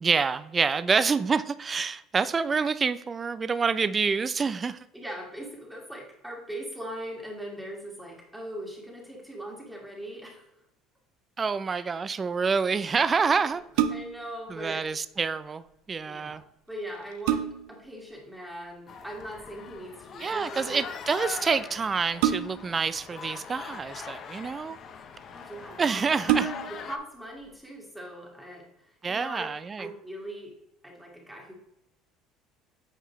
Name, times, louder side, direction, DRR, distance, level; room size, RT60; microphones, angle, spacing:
voice 1, 0.0-4.8 11.4-13.6 14.5-16.4 20.2-24.8 25.8-26.5 29.0-29.9, right 5 dB, 25° right, 0.3 m, -27 dB
voice 2, 4.9-10.5 11.6-11.8 13.4-13.5 13.9-14.9 16.1-17.4 17.7-20.9 25.3-26.3 26.7-30.5 30.8-31.5, right 1 dB, 5° right, 1.7 m, -40 dB
sound 1, 13.5-14.3 16.3-16.4 16.9-17.8 19.4-19.7 22.2-22.8 23.8-24.5 25.2-25.3 25.6-25.7 26.2-26.9 27.4-27.5, right 10 dB, 90° right, 0.6 m, -28 dB
sound 2, 18.9-27.0, left 6 dB, 40° left, 0.6 m, -41 dB
8.9 x 4.7 x 3.0 m
cardioid pair, 130°, 0 cm